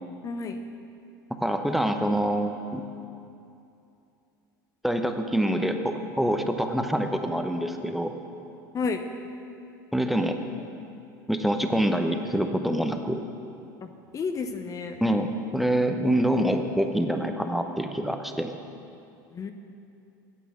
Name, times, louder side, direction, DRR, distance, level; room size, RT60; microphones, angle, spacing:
voice 1, 0.2-0.6 8.7-9.1 13.8-13.9 14.1-15.0 19.3-19.5, left 4 dB, 30° left, 7 dB, 0.7 m, -31 dB
voice 2, 1.4-2.8 4.8-8.1 9.9-10.4 11.3-13.2 15.0-18.5, right 1 dB, ahead, 6 dB, 0.8 m, -26 dB
9.8 x 8.3 x 7.1 m, 2.7 s
hypercardioid pair, 85°, 11 cm